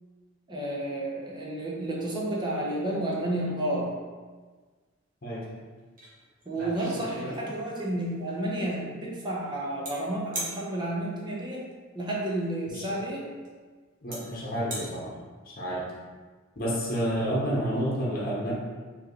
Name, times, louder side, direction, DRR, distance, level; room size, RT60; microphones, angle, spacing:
voice 1, 0.5-3.9 6.5-11.6 11.9-13.3, right 1 dB, 20° right, -4 dB, 0.8 m, -31 dB
sound 1, 6.0-6.1 6.4-7.8 9.8-9.9 10.3-10.6 12.4-12.5 13.4-13.5 14.1-14.2 14.5-14.9, right 1 dB, 40° right, 1.1 m, -36 dB
voice 2, 14.0-15.2 15.5-15.9 16.6-18.5, equal, 45° left, -6 dB, 0.9 m, -29 dB
4.6 x 2.9 x 3.1 m, 1.4 s
head